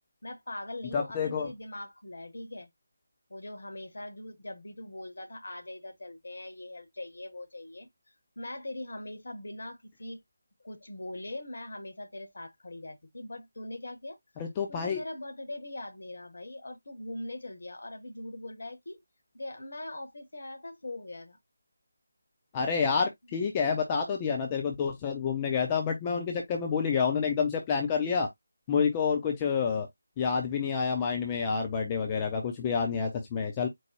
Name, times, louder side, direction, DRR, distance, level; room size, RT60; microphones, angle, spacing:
voice 1, 0.2-2.7 3.3-7.9 8.4-10.2 10.6-14.2 14.7-19.0 19.3-21.4, left 1 dB, 55° left, 1.4 m, -41 dB
voice 2, 0.9-1.5 14.4-15.0 22.5-28.3 28.7-29.9 30.2-33.7, left 6 dB, 20° left, 0.7 m, -28 dB
4.6 x 2.2 x 4.5 m
figure-of-eight pair, 155°, 0 cm